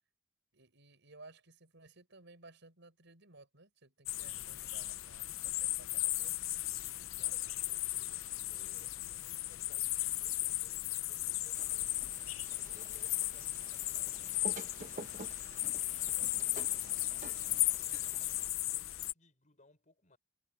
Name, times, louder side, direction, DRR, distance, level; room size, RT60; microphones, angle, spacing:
voice 1, 0.5-6.4, right 2 dB, 60° right, 6.6 m, -58 dB
sound 1, 4.1-19.1, left 17 dB, 75° left, 0.7 m, -36 dB
voice 2, 7.2-15.4 16.1-20.2, left 2 dB, 40° left, 6.5 m, -65 dB
sound 2, 11.5-18.5, right 3 dB, 40° right, 1.2 m, -50 dB
head